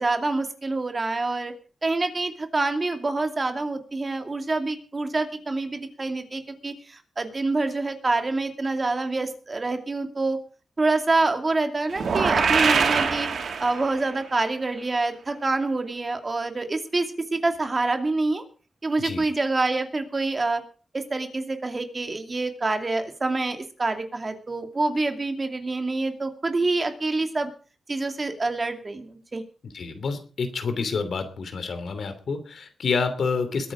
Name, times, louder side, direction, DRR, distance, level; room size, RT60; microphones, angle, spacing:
voice 1, 0.0-1.5 1.8-10.4 10.8-13.3 13.6-18.4 18.8-20.6 20.9-27.5 27.9-29.4, right 3 dB, 30° right, 6 dB, 2.5 m, -26 dB
sound 1, 11.9-14.1, right 5 dB, 75° right, 2.7 m, -23 dB
voice 2, 29.7-33.7, left 4 dB, 70° left, 9 dB, 2.9 m, -28 dB
21.5 x 9.2 x 4.9 m, 0.38 s
wide cardioid pair, 100°, 0 cm